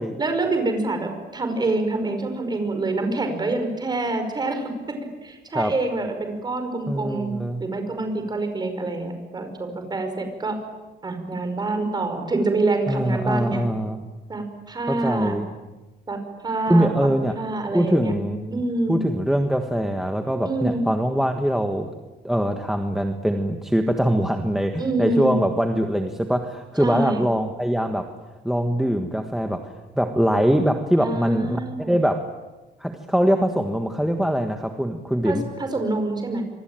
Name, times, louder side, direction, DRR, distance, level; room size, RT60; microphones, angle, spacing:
voice 1, 0.2-7.3 7.6-10.6 11.0-13.6 14.3-15.3 16.1-17.1 17.4-18.1 18.5-19.0 20.4-20.8 24.8-25.3 26.8-27.2 31.0-31.9 35.2-36.4, right 2 dB, 25° right, 6 dB, 5.0 m, -26 dB
voice 2, 6.9-7.6 12.9-14.0 14.9-15.5 16.7-17.4 17.7-18.6 18.9-21.9 22.2-28.1 28.4-32.2 32.8-35.4, equal, ahead, 5 dB, 1.5 m, -23 dB
27.0 x 24.0 x 9.0 m, 1.1 s
cardioid pair, 175°, 18 cm